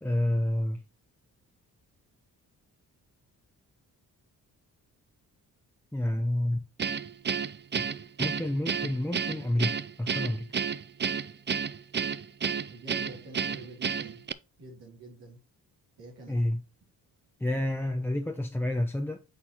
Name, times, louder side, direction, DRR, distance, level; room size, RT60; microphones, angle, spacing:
voice 1, 0.0-0.8 5.9-6.6 8.2-10.4 16.3-16.6 17.4-19.2, left 1 dB, 5° left, 0.8 m, -29 dB
Guitar, 6.8-14.3, right 6 dB, 30° right, 0.5 m, -31 dB
voice 2, 12.7-14.2 14.6-15.4 16.0-16.4, right 2 dB, 75° right, 3.0 m, -47 dB
8.3 x 4.3 x 2.9 m
supercardioid pair, 50°, 39 cm